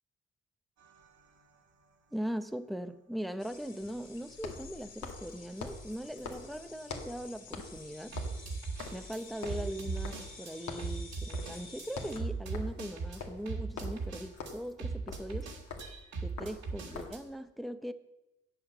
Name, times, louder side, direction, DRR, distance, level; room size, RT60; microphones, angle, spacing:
sound 1, 0.8-1.1 8.1-10.5 10.8-17.2, right 4 dB, 70° right, 2.0 m, -38 dB
sound 2, 1.0-1.1 4.3-7.2 7.5-10.4 10.7-11.0 11.3-11.6 11.9-17.3, left 4 dB, 65° left, 1.9 m, -45 dB
voice 1, 2.1-8.2 8.9-15.5 16.2-17.9, equal, ahead, 0.7 m, -40 dB
sound 3, 3.4-12.2, left 4 dB, 35° left, 2.8 m, -52 dB
8.6 x 6.9 x 7.2 m
cardioid pair, 90°, 30 cm